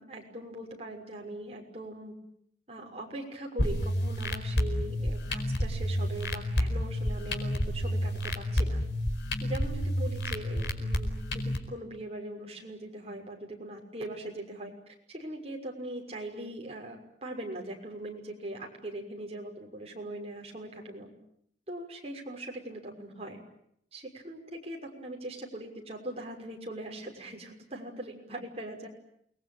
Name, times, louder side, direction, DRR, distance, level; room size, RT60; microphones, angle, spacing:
voice 1, 0.0-2.1 2.7-8.8 9.4-14.7 15.1-21.1 21.7-23.4 23.9-28.9, right 1 dB, 35° right, 1 dB, 6.2 m, -41 dB
sound 1, 3.6-11.6, equal, 90° left, 4.7 m, -30 dB
29.0 x 21.5 x 9.0 m, 0.72 s
head